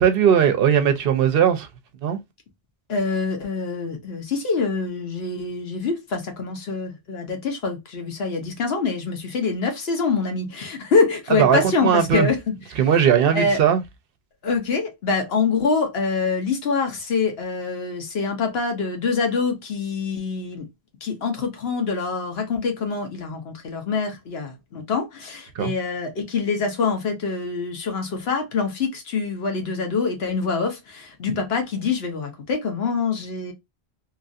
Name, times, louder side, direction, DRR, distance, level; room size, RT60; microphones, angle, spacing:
voice 1, 0.0-1.7 2.0-2.2 11.3-12.3 12.8-13.8 25.5-25.7, right 8 dB, 70° right, 0.8 m, -18 dB
voice 2, 2.9-12.5 13.3-13.6 14.4-20.7 21.0-33.5, left 4 dB, 75° left, 1.1 m, -25 dB
3.0 x 2.4 x 2.5 m
omnidirectional pair, 1.0 m